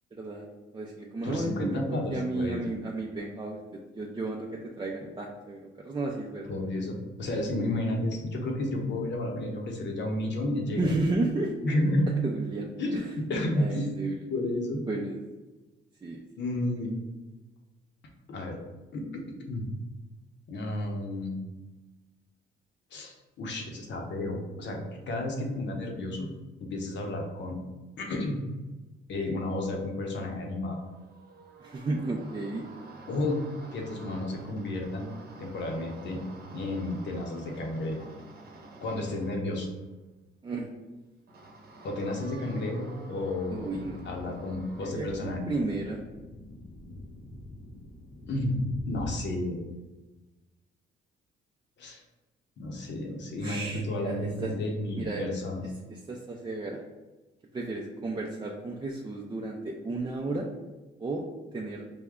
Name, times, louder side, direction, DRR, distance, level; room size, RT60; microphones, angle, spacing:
voice 1, 0.1-0.5 0.7-6.5 10.8-11.5 12.2-13.1 13.6-14.2 14.9-15.2 16.0-16.2 31.6-32.7 40.4-40.7 43.5-44.4 44.8-46.0 53.4-54.5 55.0-55.2 55.9-56.8 57.5-60.5 61.0-61.2 61.5-61.8, right 2 dB, 25° right, -1 dB, 0.5 m, -33 dB
voice 2, 1.2-2.7 6.5-10.9 11.6-12.1 12.8-13.9 14.3-14.8 16.4-16.9 18.3-18.6 18.9-19.0 19.5-19.7 20.5-21.4 22.9-26.3 26.6-27.6 28.0-28.4 29.1-30.8 33.1-33.4 33.7-35.1 35.4-36.2 36.5-38.1 38.8-39.7 41.8-43.7 44.1-45.6 48.2-48.6 48.9-49.6 51.8-52.0 52.6-55.6, left 1 dB, 65° left, 1 dB, 1.0 m, -31 dB
sound 1, 30.7-39.7 41.3-44.9, right 2 dB, 50° right, 0.9 m, -49 dB
sound 2, 43.5-49.2, left 1 dB, 30° left, 0.6 m, -44 dB
5.1 x 2.2 x 3.6 m, 1.1 s
cardioid pair, 90°, 20 cm